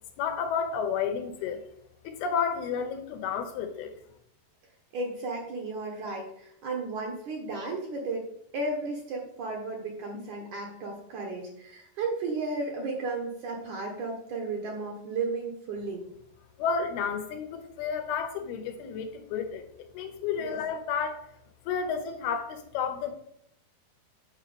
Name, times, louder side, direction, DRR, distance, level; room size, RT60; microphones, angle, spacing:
voice 1, 0.2-1.6 2.0-3.9 16.6-21.3 21.7-23.1, left 6 dB, 75° left, 7 dB, 2.7 m, -31 dB
voice 2, 4.9-8.3 8.5-16.1 20.4-20.6, right 3 dB, 65° right, 1 dB, 2.1 m, -34 dB
9.1 x 4.5 x 6.9 m, 0.73 s
omnidirectional pair, 4.7 m